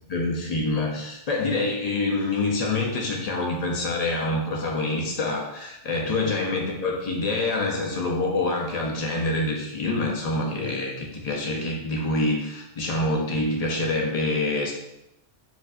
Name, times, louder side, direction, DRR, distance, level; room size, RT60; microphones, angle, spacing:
voice 1, 0.1-14.7, left 2 dB, 45° left, -1 dB, 0.5 m, -26 dB
4.5 x 2.6 x 2.4 m, 0.87 s
omnidirectional pair, 1.2 m